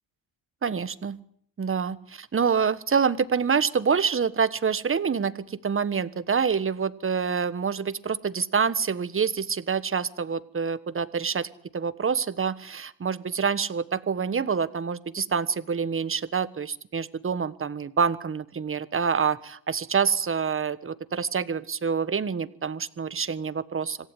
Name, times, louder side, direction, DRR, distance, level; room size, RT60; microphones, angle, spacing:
voice 1, 0.6-1.2 1.6-24.0, right 6 dB, 30° right, 14 dB, 1.4 m, -27 dB
26.5 x 15.5 x 9.7 m, 0.66 s
cardioid pair, 100°, 41 cm